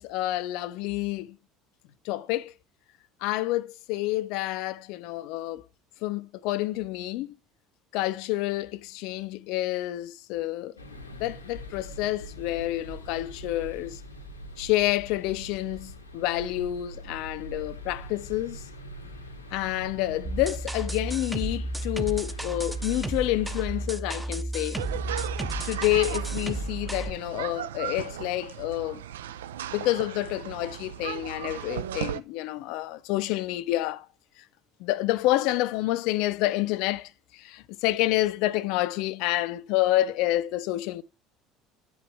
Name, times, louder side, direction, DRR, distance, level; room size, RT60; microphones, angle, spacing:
voice 1, 0.0-1.4 2.0-2.5 3.2-5.6 6.0-7.4 7.9-10.7 11.2-14.0 14.6-18.6 19.5-24.8 25.6-29.0 29.7-34.1 34.8-41.0, left 16 dB, 60° left, 0.4 m, -28 dB
sound 1, 10.8-23.9, equal, 85° left, 0.9 m, -43 dB
sound 2, 20.2-27.1, right 1 dB, 5° right, 0.6 m, -33 dB
sound 3, 24.7-32.2, right 11 dB, 75° right, 0.3 m, -36 dB
9.8 x 4.7 x 3.2 m
figure-of-eight pair, 65°, 0 cm